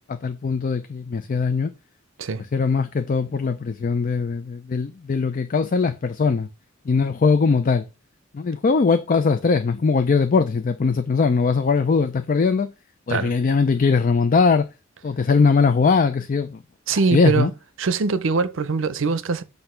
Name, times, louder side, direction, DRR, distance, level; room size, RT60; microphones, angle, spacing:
voice 1, 0.1-1.7 2.5-6.5 6.9-7.8 8.3-12.7 13.1-14.7 15.0-16.6 17.1-17.5, left 4 dB, 40° left, 0.4 m, -20 dB
voice 2, 16.9-17.5 17.8-19.4, right 4 dB, 65° right, 0.6 m, -22 dB
7.8 x 2.7 x 5.6 m
head